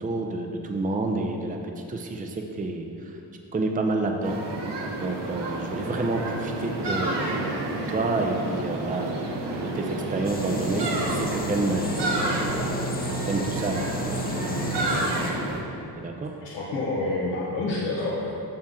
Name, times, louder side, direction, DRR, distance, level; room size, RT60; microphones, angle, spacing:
voice 1, 0.0-1.6 1.9-3.1 3.5-4.4 5.0-9.3 9.7-12.2 13.3-15.6 16.0-16.3, right 2 dB, 20° right, 2 dB, 0.6 m, -29 dB
sound 1, 4.2-15.6, right 2 dB, 75° right, 1.2 m, -30 dB
sound 2, 10.2-15.3, equal, 20° left, 0.7 m, -33 dB
voice 2, 16.4-18.3, left 2 dB, 90° left, -7 dB, 1.2 m, -28 dB
8.7 x 6.0 x 3.8 m, 2.7 s
cardioid pair, 75°, 42 cm